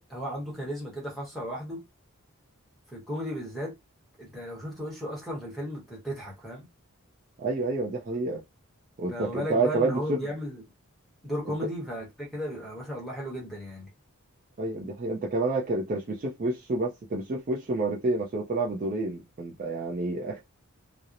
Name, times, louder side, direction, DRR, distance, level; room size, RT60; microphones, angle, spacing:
voice 1, 0.0-1.8 2.9-3.7 4.2-6.7 9.1-10.6 11.2-13.9, equal, ahead, 1.0 m, -35 dB
voice 2, 7.4-8.4 9.0-10.2 14.6-20.4, right 2 dB, 40° right, 0.4 m, -29 dB
2.8 x 2.0 x 2.4 m
head